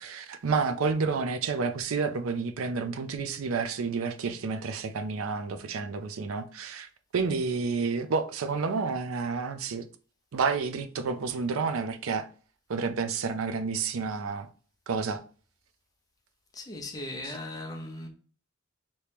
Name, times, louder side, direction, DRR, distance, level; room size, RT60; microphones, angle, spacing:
voice 1, 0.0-9.9 10.3-12.3 12.7-14.5 14.9-15.2 17.2-17.4, right 4 dB, 80° right, 0.5 m, -30 dB
voice 2, 16.5-18.1, left 1 dB, 15° left, 0.6 m, -38 dB
3.1 x 2.8 x 3.4 m
head